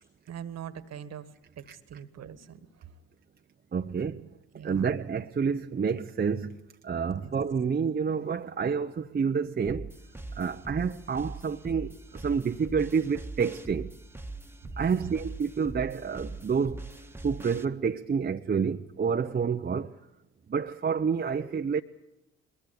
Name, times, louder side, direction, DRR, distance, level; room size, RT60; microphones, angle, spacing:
voice 1, 0.3-1.3 1.6-2.7 4.5-4.9 7.1-7.3 14.9-15.1, right 9 dB, 55° right, 1.7 m, -42 dB
voice 2, 3.7-4.4 4.6-9.9 10.3-13.9 14.8-16.9 17.2-19.9 20.5-21.8, right 6 dB, 30° right, 0.9 m, -29 dB
sound 1, 9.6-17.6, right 2 dB, 5° right, 1.5 m, -42 dB
21.5 x 21.5 x 8.3 m
hypercardioid pair, 55°, 31 cm